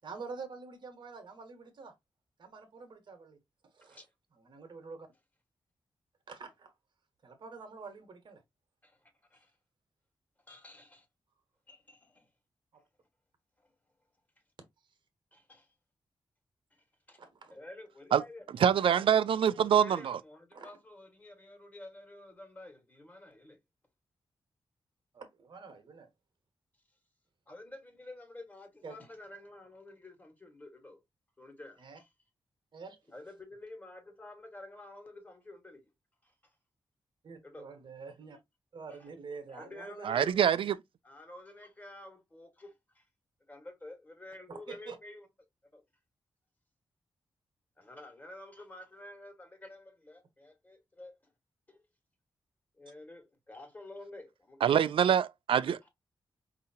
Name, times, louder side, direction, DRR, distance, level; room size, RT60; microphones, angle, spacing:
voice 1, 0.0-1.9 2.4-3.4 3.7-4.0 4.3-5.1 6.3-6.7 7.2-8.4 12.7-12.8 17.2-17.5 20.5-20.7 25.1-26.1 28.8-29.0 31.8-32.0 32.7-33.0 37.2-38.4 38.7-40.1 44.5-45.0, right 4 dB, 60° right, 1.3 m, -47 dB
voice 2, 8.8-9.5 10.5-11.1 11.7-12.3 13.6-13.7 15.3-15.7 16.7-17.2 17.5-19.1 19.6-23.6 27.5-31.0 31.4-32.1 33.1-35.8 36.2-36.3 37.4-37.7 38.9-39.1 39.5-40.4 41.0-43.0 43.5-45.3 45.7-45.8 47.8-51.3 51.7-51.8 52.8-54.8 55.8-55.9, left 2 dB, 20° left, 1.5 m, -50 dB
voice 3, 18.6-20.2 40.0-40.8 54.6-55.9, right 9 dB, 80° right, 0.4 m, -25 dB
5.0 x 2.8 x 2.7 m
wide cardioid pair, 120°, 9 cm